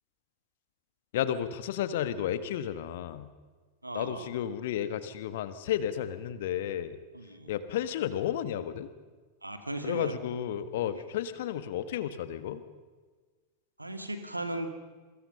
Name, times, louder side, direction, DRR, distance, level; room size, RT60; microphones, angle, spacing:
voice 1, 1.1-3.3 3.9-7.0 7.5-8.9 9.8-12.6, left 10 dB, 55° left, 13 dB, 1.5 m, -32 dB
voice 2, 3.8-4.3 7.1-7.5 9.4-10.2 13.8-14.7, right 1 dB, 85° right, 8 dB, 2.2 m, -36 dB
28.5 x 23.0 x 5.7 m, 1.4 s
figure-of-eight pair, 90°, 0 cm